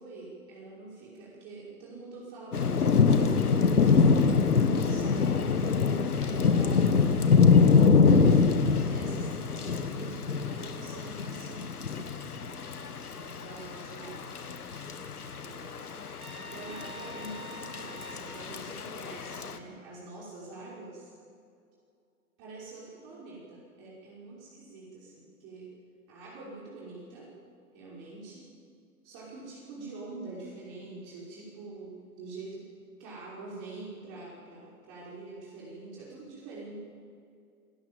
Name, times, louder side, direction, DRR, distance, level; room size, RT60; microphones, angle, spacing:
voice 1, 0.0-3.7 4.8-11.9 13.2-14.2 15.4-16.0 16.4-21.1 22.4-25.7 26.1-27.3 27.7-28.5 29.0-32.7 33.0-36.8, right 3 dB, 40° right, -6 dB, 5.6 m, -45 dB
Thunder / Rain, 2.5-19.6, left 5 dB, 85° left, 1.4 m, -25 dB
Trumpet, 16.2-18.5, right 1 dB, 15° right, 3.2 m, -46 dB
27.0 x 13.0 x 7.9 m, 2.4 s
figure-of-eight pair, 100°, 44 cm